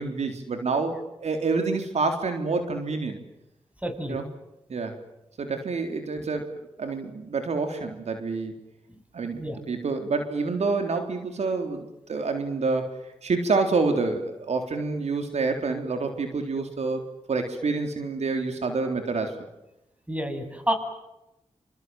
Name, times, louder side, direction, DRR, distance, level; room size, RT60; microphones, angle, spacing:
voice 1, 0.0-3.2 4.1-4.3 4.7-4.9 5.4-6.5 6.8-8.5 9.1-12.9 13.2-19.3, right 4 dB, 75° right, 6 dB, 3.8 m, -27 dB
voice 2, 3.8-4.2 9.3-9.6 20.1-20.7, right 1 dB, 10° right, 6 dB, 7.8 m, -29 dB
28.0 x 27.0 x 7.7 m, 0.90 s
cardioid pair, 60°, 11 cm